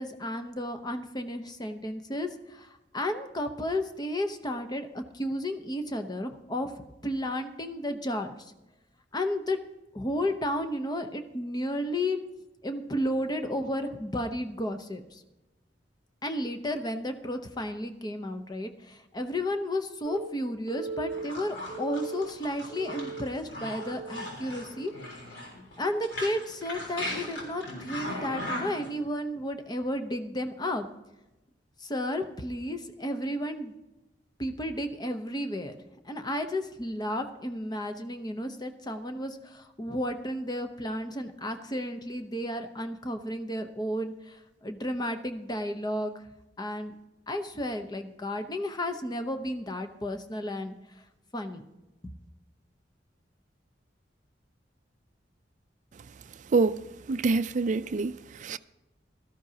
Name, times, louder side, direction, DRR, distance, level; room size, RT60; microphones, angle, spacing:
voice 1, 0.0-6.7 7.0-8.3 9.1-9.6 9.9-12.2 12.6-15.2 16.2-24.9 25.8-30.9 31.8-33.7 34.4-35.8 36.0-46.1 46.6-46.9 47.3-50.7 51.3-51.6 52.0-52.1, left 1 dB, 25° left, 0.8 m, -33 dB
Telephone, 20.0-20.2 20.7-21.2 21.7-22.2 22.7-23.2 23.7-24.2 24.7-25.0 26.0-26.2, right 5 dB, 20° right, 2.4 m, -38 dB
sound 1, 21.1-28.9, left 1 dB, 75° left, 3.7 m, -38 dB
voice 2, 56.5-58.6, right 4 dB, 45° right, 0.4 m, -27 dB
17.5 x 13.0 x 2.8 m
head